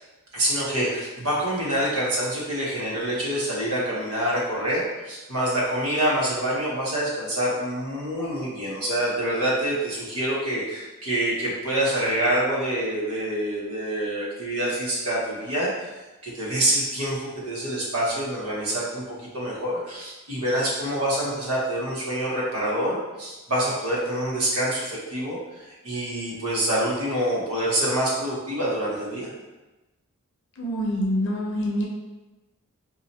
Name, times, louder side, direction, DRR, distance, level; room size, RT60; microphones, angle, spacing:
voice 1, 0.3-15.9 16.2-19.0 19.3-25.4 25.8-29.3, right 1 dB, 85° right, -5 dB, 1.1 m, -26 dB
voice 2, 30.6-31.9, equal, 55° left, -2 dB, 0.6 m, -25 dB
2.8 x 2.4 x 4.1 m, 1.1 s
head